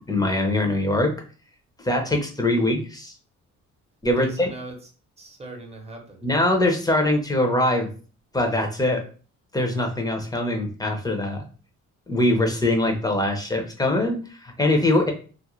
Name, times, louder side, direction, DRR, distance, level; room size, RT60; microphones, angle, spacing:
voice 1, 0.1-1.1 1.8-3.1 4.0-4.5 6.2-7.9 8.3-9.0 9.5-11.4 12.1-15.1, left 1 dB, 10° left, 3 dB, 0.6 m, -22 dB
voice 2, 4.2-4.7 5.2-6.3, right 3 dB, 20° right, 2 dB, 0.8 m, -39 dB
2.4 x 2.0 x 3.0 m, 0.38 s
cardioid pair, 90°, 30 cm